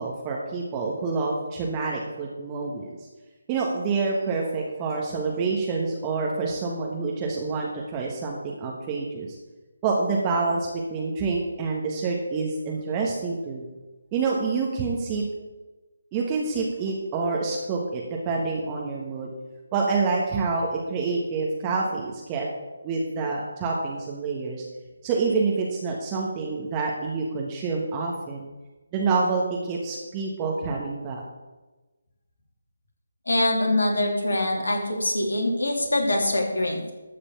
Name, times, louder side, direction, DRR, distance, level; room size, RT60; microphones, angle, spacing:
voice 1, 0.0-3.0 3.5-9.4 9.8-13.6 14.1-15.2 16.1-19.3 19.7-22.5 22.8-24.6 25.0-28.5 28.9-31.2, right 4 dB, 20° right, -2 dB, 1.4 m, -27 dB
voice 2, 33.3-36.9, left 1 dB, 75° left, 1 dB, 2.9 m, -24 dB
13.0 x 5.1 x 7.1 m, 1.2 s
figure-of-eight pair, 150°, 0 cm